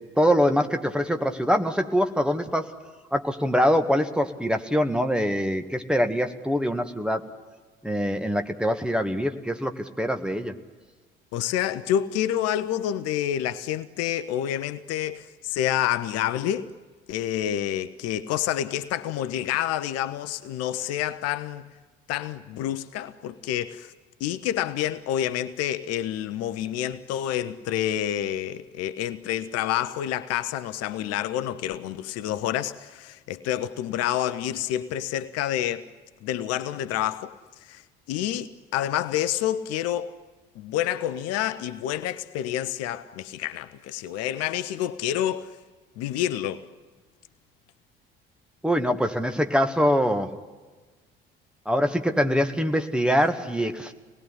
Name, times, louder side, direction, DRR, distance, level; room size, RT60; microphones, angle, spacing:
voice 1, 0.0-2.7 3.1-7.3 7.8-10.5 48.6-50.4 51.6-53.9, equal, 5° right, 1.8 m, -24 dB
voice 2, 11.3-16.7 17.1-21.7 22.1-23.9 24.2-35.9 36.2-37.3 37.6-37.8 38.1-40.2 40.6-45.5 46.0-46.7, left 11 dB, 55° left, 0.9 m, -28 dB
26.0 x 20.0 x 9.9 m
figure-of-eight pair, 55°, 29 cm